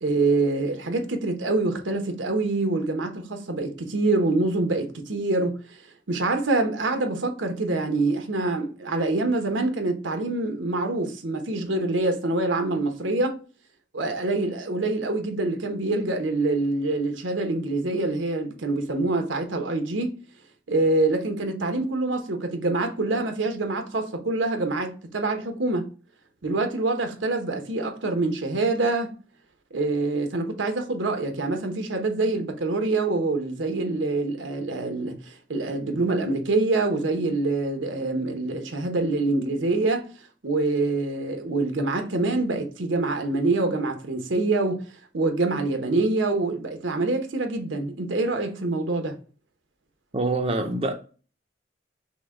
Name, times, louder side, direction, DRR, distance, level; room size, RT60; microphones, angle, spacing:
voice 1, 0.0-5.8 6.1-13.4 13.9-20.2 20.7-25.9 26.4-29.1 29.7-40.1 40.4-44.8 45.1-49.2, right 2 dB, 85° right, 0.9 m, -25 dB
voice 2, 50.1-50.9, right 2 dB, 30° right, 0.5 m, -25 dB
6.0 x 2.2 x 3.6 m
head